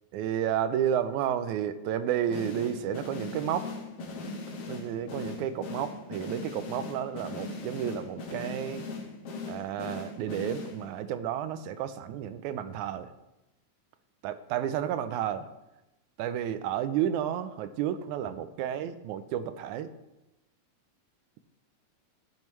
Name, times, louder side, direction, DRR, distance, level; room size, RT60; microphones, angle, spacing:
voice 1, 0.1-3.7 4.7-8.9 9.5-13.1 14.2-15.5 16.2-19.9, right 10 dB, 85° right, 12 dB, 2.1 m, -31 dB
sound 1, 2.3-11.1, left 3 dB, 65° left, 1.9 m, -39 dB
14.0 x 7.6 x 3.2 m, 0.94 s
omnidirectional pair, 3.4 m